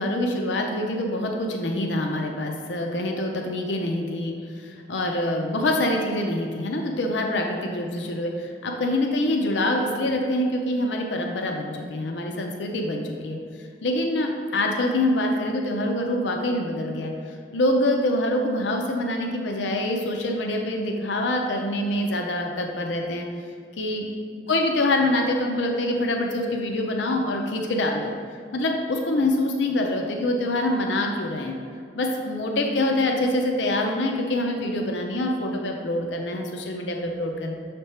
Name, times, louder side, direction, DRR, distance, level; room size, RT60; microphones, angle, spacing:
voice 1, 0.0-13.4 13.8-17.1 17.5-23.3 23.8-24.1 24.5-28.1 28.5-31.5 31.9-37.5, left 1 dB, 75° left, 2 dB, 0.6 m, -25 dB
6.7 x 3.4 x 4.2 m, 2.3 s
head